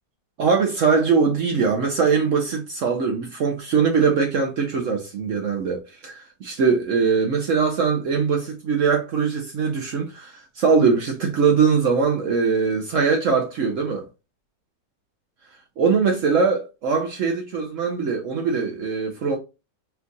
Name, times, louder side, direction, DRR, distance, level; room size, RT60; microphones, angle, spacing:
voice 1, 0.4-14.1 15.8-19.4, right 5 dB, 60° right, 0.9 m, -21 dB
4.5 x 2.4 x 3.9 m
omnidirectional pair, 1.8 m